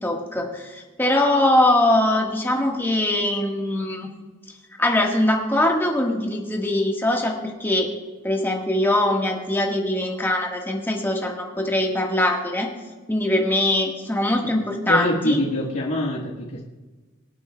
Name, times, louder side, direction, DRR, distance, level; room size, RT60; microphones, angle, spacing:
voice 1, 0.0-4.1 4.8-7.9 8.2-12.7 13.1-15.4, left 1 dB, 10° left, 0 dB, 1.5 m, -22 dB
voice 2, 14.8-16.6, left 1 dB, 90° left, -5 dB, 1.5 m, -24 dB
24.0 x 8.8 x 2.3 m, 1.3 s
head